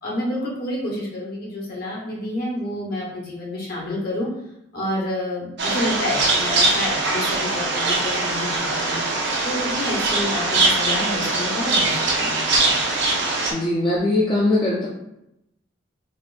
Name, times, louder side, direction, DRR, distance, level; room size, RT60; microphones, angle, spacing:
voice 1, 0.0-4.3 4.7-9.0 9.4-12.4, left 1 dB, 50° left, -4 dB, 1.0 m, -29 dB
sound 1, 5.6-13.5, right 3 dB, 60° right, 0.6 m, -22 dB
voice 2, 13.5-14.9, left 2 dB, 25° left, -6 dB, 0.4 m, -20 dB
4.2 x 2.4 x 2.5 m, 0.84 s
head